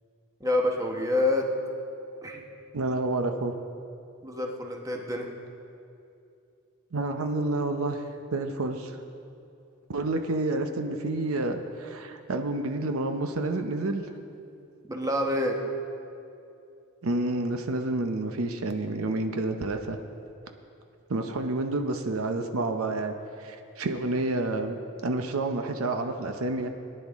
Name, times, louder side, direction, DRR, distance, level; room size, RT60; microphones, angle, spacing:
voice 1, 0.4-1.5 2.2-2.4 4.2-5.3 14.9-15.6, left 1 dB, 15° right, 1 dB, 1.0 m, -27 dB
voice 2, 2.7-3.5 6.9-8.0 8.3-9.0 9.9-14.0 17.0-20.0 21.1-26.7, right 2 dB, 75° right, 6 dB, 0.7 m, -29 dB
18.5 x 10.0 x 3.6 m, 2.7 s
head